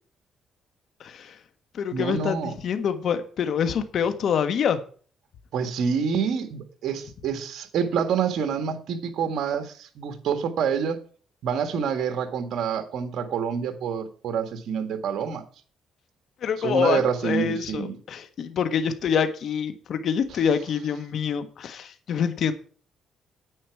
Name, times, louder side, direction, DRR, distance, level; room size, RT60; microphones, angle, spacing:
voice 1, 1.0-1.4 1.7-4.8 16.4-22.5, left 7 dB, 65° left, 10 dB, 1.5 m, -26 dB
voice 2, 1.9-2.5 5.5-11.0 11.4-15.4 16.6-18.0, right 7 dB, 70° right, 8 dB, 1.7 m, -27 dB
10.0 x 8.7 x 4.7 m, 0.43 s
cardioid pair, 90°, 0 cm